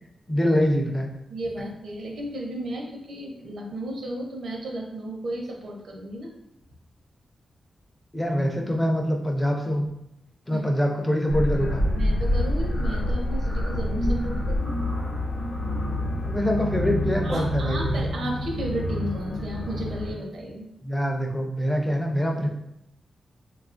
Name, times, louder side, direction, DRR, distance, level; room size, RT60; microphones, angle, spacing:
voice 1, 0.3-1.1 8.1-9.9 10.5-11.8 16.2-18.0 20.8-22.5, equal, 15° left, 1 dB, 0.4 m, -24 dB
voice 2, 1.3-6.3 10.5-10.6 11.9-14.8 17.2-20.7, right 1 dB, 80° right, 0 dB, 0.6 m, -34 dB
sound 1, 11.3-20.1, left 1 dB, 60° left, 0.8 m, -27 dB
3.5 x 2.3 x 2.4 m, 0.81 s
wide cardioid pair, 140°, 0 cm